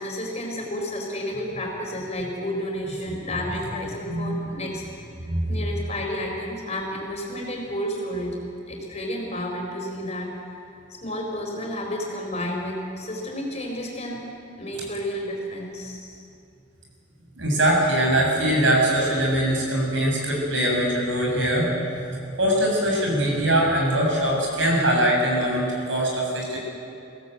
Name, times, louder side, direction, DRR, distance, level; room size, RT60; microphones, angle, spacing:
voice 1, 0.0-4.9 5.5-8.4 8.7-10.4 11.0-14.3 14.6-16.2, left 1 dB, 35° left, 0 dB, 4.6 m, -31 dB
voice 2, 4.1-4.5 5.3-5.6 17.4-26.6, right 1 dB, 70° right, -1 dB, 7.1 m, -22 dB
24.0 x 16.5 x 8.1 m, 2.6 s
head